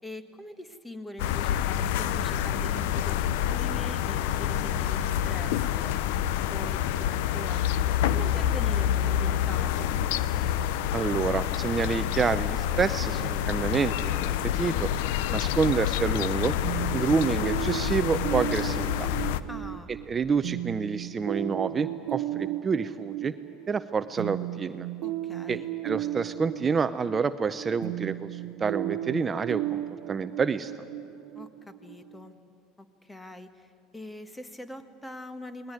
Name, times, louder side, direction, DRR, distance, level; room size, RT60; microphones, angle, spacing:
voice 1, 0.0-10.0 19.5-19.9 25.0-25.7 31.3-32.4 32.8-35.7, left 1 dB, 10° left, 9 dB, 1.5 m, -43 dB
sound 1, 1.2-19.4, left 10 dB, 75° left, 0.7 m, -27 dB
voice 2, 10.9-14.9 15.3-16.5 16.9-19.1 20.1-23.3 23.7-24.9 25.5-25.6 25.8-30.7, right 5 dB, 30° right, 12 dB, 0.6 m, -28 dB
sound 2, 16.6-32.2, right 15 dB, 70° right, 0.7 m, -35 dB
19.5 x 19.0 x 9.5 m, 2.6 s
supercardioid pair, 90°, 0 cm